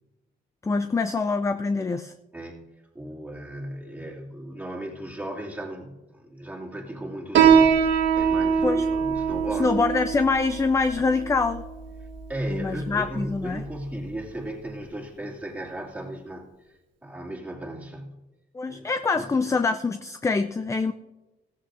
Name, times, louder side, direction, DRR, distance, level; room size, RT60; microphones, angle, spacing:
voice 1, 0.6-2.1 8.6-8.9 9.5-11.6 12.5-13.6 18.5-20.9, left 4 dB, 15° left, 9 dB, 0.4 m, -25 dB
voice 2, 2.3-2.7 2.9-9.7 12.3-16.5 17.0-18.2 18.7-18.9 19.1-19.5, right 1 dB, 10° right, -3 dB, 2.5 m, -36 dB
Piano, 7.3-14.4, right 7 dB, 70° right, 1.6 m, -24 dB
16.0 x 14.5 x 2.6 m, 1.1 s
cardioid pair, 90°, 20 cm